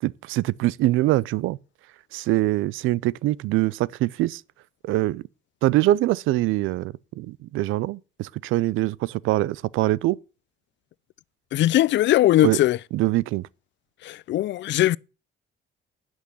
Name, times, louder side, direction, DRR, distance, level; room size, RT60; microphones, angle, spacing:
voice 1, 0.0-1.6 2.1-4.4 4.8-5.2 5.6-10.2 12.4-12.6 12.9-13.5, right 17 dB, 90° right, 0.5 m, -23 dB
voice 2, 11.5-12.8 14.0-15.0, left 14 dB, 65° left, 0.4 m, -20 dB
11.0 x 6.3 x 6.9 m
cardioid pair, 90°, 20 cm